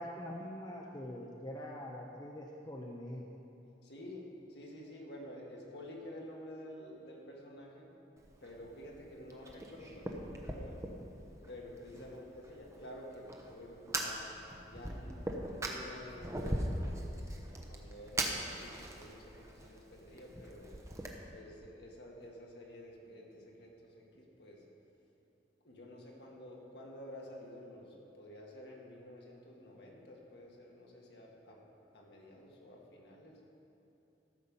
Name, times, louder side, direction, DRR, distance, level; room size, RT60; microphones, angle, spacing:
voice 1, 0.0-3.3, equal, 25° left, -1 dB, 0.6 m, -44 dB
voice 2, 3.8-4.2 4.5-7.9 8.4-10.9 11.2-14.2 14.6-17.3 17.7-20.8 21.3-24.6 25.6-31.6 31.9-33.4, left 1 dB, 65° left, -2 dB, 1.8 m, -50 dB
Fire, 8.2-21.1, right 1 dB, 15° right, 0.8 m, -41 dB
14.0 x 6.7 x 5.5 m, 3.0 s
head